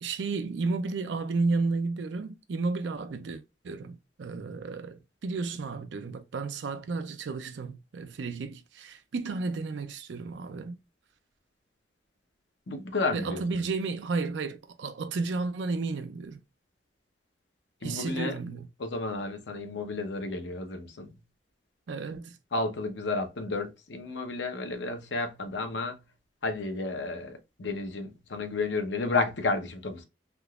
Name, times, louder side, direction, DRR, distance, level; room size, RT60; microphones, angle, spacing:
voice 1, 0.0-10.8 13.1-16.4 17.8-18.7 21.9-22.4, right 3 dB, 80° right, 0.4 m, -32 dB
voice 2, 12.7-13.6 17.8-18.4 18.8-21.1 22.5-26.0 26.4-30.0, left 3 dB, 80° left, 0.8 m, -32 dB
3.5 x 2.8 x 2.3 m
head